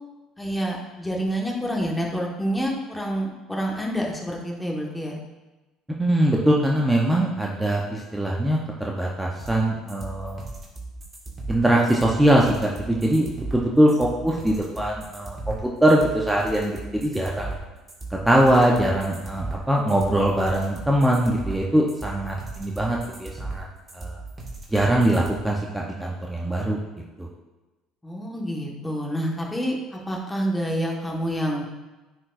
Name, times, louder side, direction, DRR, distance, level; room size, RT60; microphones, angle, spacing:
voice 1, 0.4-5.2 28.0-31.7, equal, 10° left, -1 dB, 1.5 m, -28 dB
voice 2, 6.0-10.4 11.5-17.5 18.1-23.6 23.9-24.2 24.7-26.8 27.2-27.3, right 1 dB, 5° right, -2 dB, 0.9 m, -22 dB
sound 1, 9.4-25.4, right 3 dB, 25° right, 2.0 m, -37 dB
9.6 x 4.7 x 2.6 m, 1.1 s
hypercardioid pair, 70°, 0 cm